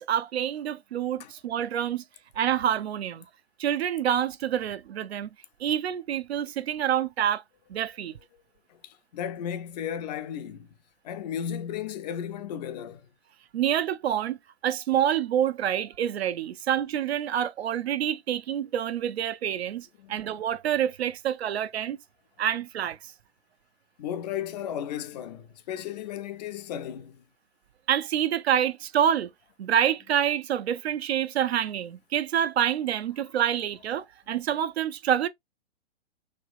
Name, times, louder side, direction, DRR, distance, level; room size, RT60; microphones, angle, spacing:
voice 1, 0.0-2.0 2.4-3.3 3.6-5.3 5.6-7.4 7.7-8.1 13.5-14.4 14.6-22.0 22.4-23.1 27.9-29.3 29.6-35.3, right 10 dB, 75° right, 0.5 m, -27 dB
voice 2, 8.7-10.7 11.0-13.0 20.0-20.2 24.0-27.2, left 9 dB, 40° left, 0.5 m, -35 dB
3.3 x 3.0 x 2.4 m
hypercardioid pair, 125°, 32 cm